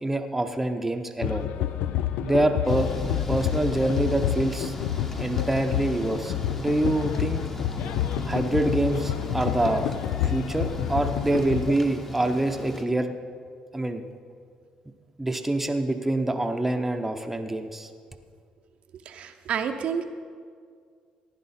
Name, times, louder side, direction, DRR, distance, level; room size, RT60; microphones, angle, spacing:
voice 1, 0.0-1.5 2.2-2.9 3.3-4.7 5.2-7.4 8.2-9.9 10.2-13.1 13.7-14.0 15.2-17.9, right 1 dB, 10° right, 4 dB, 0.8 m, -26 dB
sound 1, 1.2-11.7, left 11 dB, 85° left, 0.4 m, -29 dB
Thunder / Rain, 2.7-12.8, left 1 dB, 15° left, 1.1 m, -37 dB
sound 2, 2.9-5.6, left 6 dB, 40° left, 0.9 m, -37 dB
voice 2, 19.1-20.0, right 7 dB, 65° right, 6 dB, 0.7 m, -29 dB
15.0 x 10.5 x 4.2 m, 2.1 s
cardioid pair, 95°, 2 cm